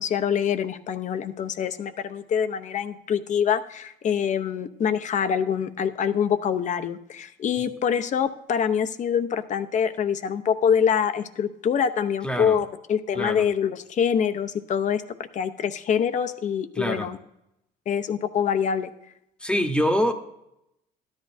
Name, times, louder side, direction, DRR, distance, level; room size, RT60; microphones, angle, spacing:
voice 1, 0.0-15.0 15.3-17.2 17.9-18.9, left 7 dB, 45° left, 11 dB, 0.7 m, -25 dB
voice 2, 12.2-12.6 13.1-13.4 16.8-17.1 19.4-20.1, equal, 5° left, 7 dB, 1.0 m, -24 dB
13.0 x 10.5 x 2.6 m, 0.83 s
cardioid pair, 110°, 17 cm